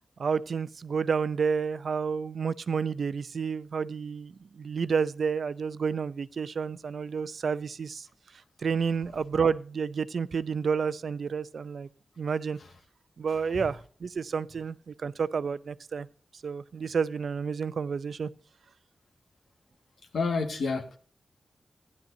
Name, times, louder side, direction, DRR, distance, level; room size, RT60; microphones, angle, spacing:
voice 1, 0.2-8.1 8.6-11.9 12.2-12.6 13.2-16.1 16.4-18.3, right 6 dB, 65° right, 0.5 m, -30 dB
voice 2, 20.1-21.0, left 4 dB, 85° left, 1.6 m, -28 dB
16.5 x 10.5 x 2.6 m
wide cardioid pair, 110°, 0 cm